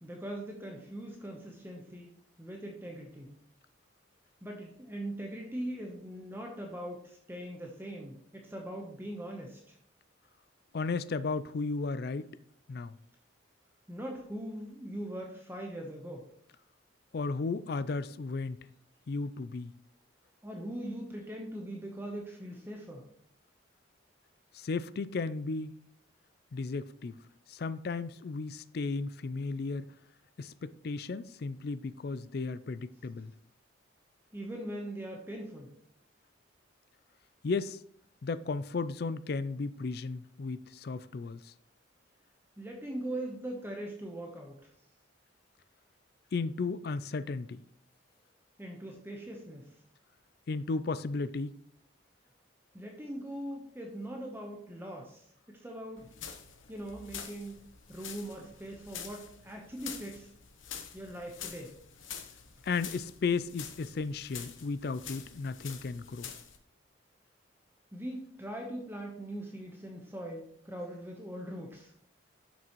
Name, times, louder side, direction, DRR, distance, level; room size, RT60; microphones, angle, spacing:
voice 1, 0.0-3.3 4.4-9.8 13.9-16.2 20.4-23.0 34.3-35.7 42.6-44.7 48.6-49.8 52.7-55.3 55.6-56.0 56.7-57.6 57.9-60.3 60.9-61.7 67.9-71.9, right 1 dB, 10° right, 0.9 m, -41 dB
voice 2, 10.7-12.3 12.7-12.9 17.1-18.6 19.1-19.7 24.5-25.8 26.5-27.2 27.5-29.8 30.4-33.3 37.4-37.8 38.2-41.5 46.3-47.6 50.5-51.6 62.6-66.3, left 4 dB, 50° left, 0.4 m, -34 dB
sound 1, 56.0-66.6, left 8 dB, 80° left, 1.0 m, -46 dB
11.0 x 6.2 x 3.0 m
head